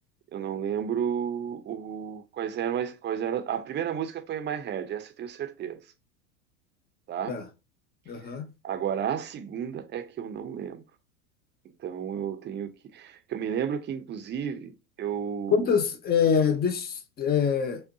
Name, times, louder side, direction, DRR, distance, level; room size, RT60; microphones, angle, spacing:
voice 1, 0.3-5.8 7.1-7.4 8.6-10.8 11.8-14.7 15.0-15.7, right 8 dB, 25° right, 0.6 m, -32 dB
voice 2, 8.1-8.5 15.5-17.8, left 7 dB, 20° left, 0.6 m, -25 dB
5.4 x 2.2 x 2.6 m
hypercardioid pair, 95°, 42 cm